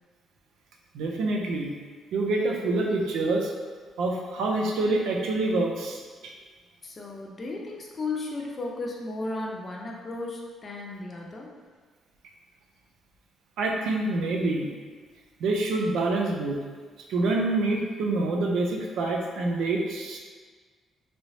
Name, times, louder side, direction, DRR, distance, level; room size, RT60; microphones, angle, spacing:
voice 1, 0.9-1.7 2.1-3.5 4.0-6.3 13.6-14.7 15.4-16.6 17.1-20.2, right 2 dB, 85° right, 1 dB, 0.5 m, -26 dB
voice 2, 6.8-11.5, left 3 dB, 40° left, -1 dB, 0.6 m, -35 dB
3.2 x 3.0 x 2.7 m, 1.5 s
cardioid pair, 90°, 0 cm